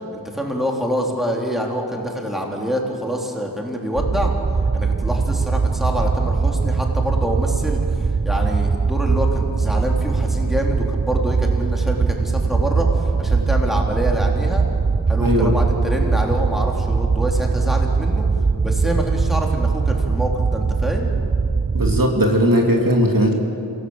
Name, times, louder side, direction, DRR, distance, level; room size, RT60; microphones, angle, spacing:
voice 1, 0.3-4.3 4.7-14.6 15.1-18.3 18.6-21.1, equal, ahead, 0 dB, 3.3 m, -26 dB
sound 1, 4.0-22.0, right 4 dB, 25° right, 0.5 m, -21 dB
voice 2, 15.2-15.5 21.7-23.3, equal, 55° right, 1 dB, 2.7 m, -17 dB
26.5 x 16.5 x 7.9 m, 2.7 s
wide cardioid pair, 40°, 39 cm